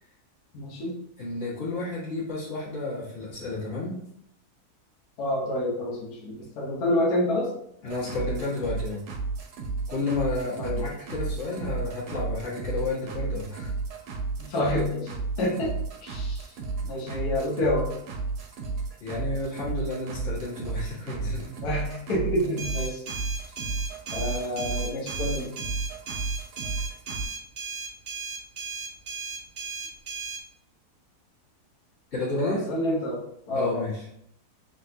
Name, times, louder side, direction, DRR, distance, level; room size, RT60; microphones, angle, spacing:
voice 1, 0.5-1.0 5.2-7.5 10.6-10.8 14.4-15.7 16.0-16.5 16.9-17.9 21.6-23.0 24.1-25.5 32.7-33.2 33.5-33.8, left 1 dB, 75° left, -1 dB, 1.5 m, -28 dB
voice 2, 1.2-3.9 7.8-9.0 9.9-13.7 19.0-21.5 32.1-32.6 33.5-34.1, left 2 dB, 45° left, -9 dB, 2.0 m, -31 dB
sound 1, 7.9-27.2, right 4 dB, 85° right, 1.3 m, -33 dB
sound 2, 22.6-30.4, right 4 dB, 65° right, 0.5 m, -36 dB
3.8 x 3.7 x 2.7 m, 0.71 s
omnidirectional pair, 1.6 m